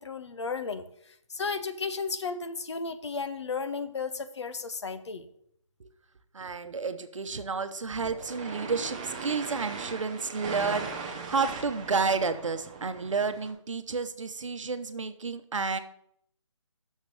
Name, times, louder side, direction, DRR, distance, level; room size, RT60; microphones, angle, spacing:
voice 1, 0.0-5.3, left 4 dB, 60° left, 11 dB, 0.8 m, -34 dB
voice 2, 6.3-15.8, right 4 dB, 70° right, 10 dB, 0.9 m, -31 dB
sound 1, 7.9-13.5, right 5 dB, 15° right, 0.5 m, -39 dB
6.6 x 6.1 x 6.4 m, 0.70 s
figure-of-eight pair, 160°, 16 cm